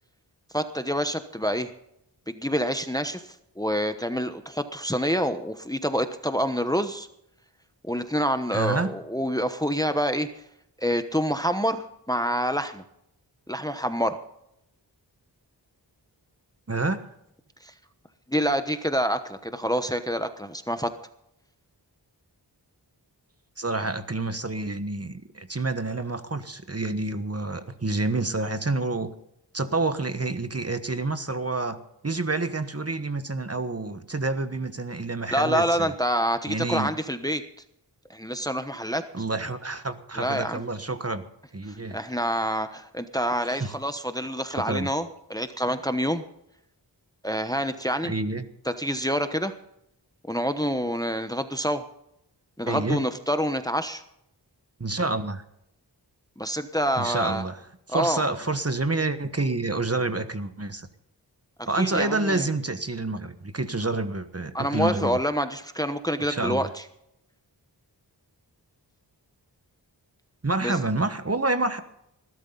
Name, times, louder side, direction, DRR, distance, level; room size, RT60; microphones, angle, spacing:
voice 1, 0.5-1.7 2.3-7.1 7.8-10.3 10.8-12.8 13.5-14.2 17.6-17.7 18.3-20.9 35.3-37.4 38.1-39.0 40.2-40.6 41.7-46.2 47.2-48.1 48.6-49.5 50.3-51.8 52.6-54.0 56.4-57.4 57.9-58.2 61.6-62.5 64.5-66.8 70.6-70.8, equal, 10° left, 9 dB, 1.1 m, -27 dB
voice 2, 8.5-8.9 16.7-17.0 23.6-29.1 29.5-31.8 32.0-35.9 36.5-36.9 39.1-41.2 41.5-42.0 43.5-43.7 44.5-44.9 48.0-48.5 52.7-53.0 54.8-55.4 57.0-57.6 57.9-60.9 61.7-65.2 66.3-66.7 70.4-71.8, right 2 dB, 35° right, 10 dB, 1.3 m, -28 dB
19.5 x 12.5 x 4.0 m, 0.77 s
wide cardioid pair, 50°, 43 cm